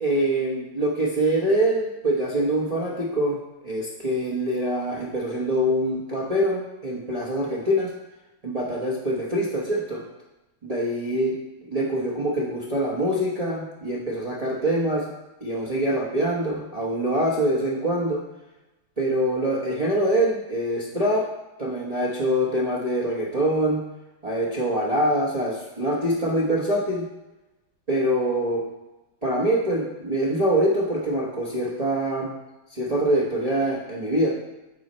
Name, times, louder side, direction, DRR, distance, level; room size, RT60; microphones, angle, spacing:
voice 1, 0.0-3.4 3.6-7.9 8.4-10.0 10.6-11.4 11.6-15.0 15.4-18.2 19.0-21.2 21.6-23.8 24.2-27.1 27.9-28.6 29.2-32.3 32.7-34.3, right 1 dB, 45° right, -5 dB, 0.5 m, -24 dB
6.7 x 4.3 x 4.3 m, 1.0 s
omnidirectional pair, 2.1 m